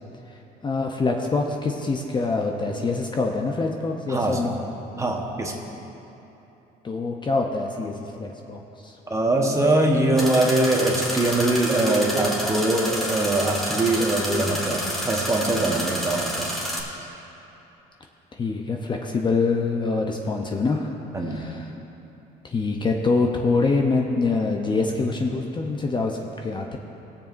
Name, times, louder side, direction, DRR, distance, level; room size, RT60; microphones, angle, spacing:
voice 1, 0.6-4.6 6.8-9.0 18.4-20.9 21.3-21.7 22.4-26.8, left 3 dB, 25° left, 1 dB, 0.7 m, -25 dB
voice 2, 4.1-4.5 5.0-5.5 9.1-16.6 21.1-21.4, right 2 dB, 20° right, 1 dB, 1.1 m, -22 dB
sound 1, 10.2-16.8, equal, ahead, 1.8 m, -29 dB
20.0 x 7.3 x 2.6 m, 3.0 s
cardioid pair, 110°, 17 cm